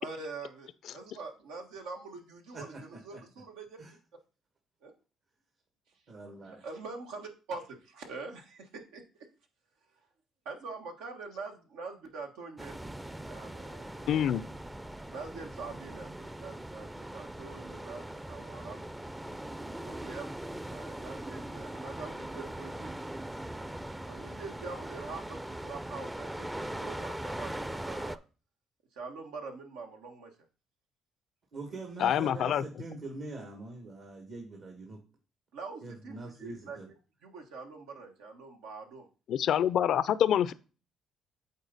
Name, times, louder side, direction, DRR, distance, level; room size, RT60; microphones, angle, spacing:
voice 1, 0.0-3.8 4.8-4.9 6.4-9.0 10.4-12.8 13.2-14.4 15.1-18.8 19.7-20.3 20.7-22.9 24.1-28.2 28.9-30.3 35.5-36.9 37.2-39.1, right 4 dB, 90° right, 1.4 m, -44 dB
voice 2, 6.1-6.6 31.5-35.0 35.8-36.9, right 3 dB, 65° right, 2.1 m, -43 dB
sound 1, 12.6-28.2, right 1 dB, 10° right, 0.5 m, -40 dB
voice 3, 14.1-14.4 32.0-32.6 39.3-40.5, left 9 dB, 70° left, 0.4 m, -26 dB
8.2 x 4.2 x 4.0 m
supercardioid pair, 70°, 0 cm